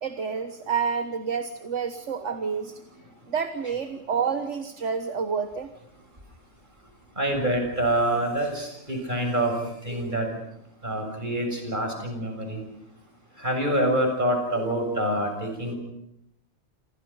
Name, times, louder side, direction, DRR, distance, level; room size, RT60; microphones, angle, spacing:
voice 1, 0.0-2.8 3.3-5.7, right 6 dB, 65° right, 8 dB, 1.7 m, -29 dB
voice 2, 7.2-9.5 9.8-10.3 10.8-12.6 13.4-15.7, right 1 dB, 35° right, 3 dB, 7.3 m, -26 dB
29.0 x 27.5 x 5.7 m, 0.76 s
omnidirectional pair, 1.3 m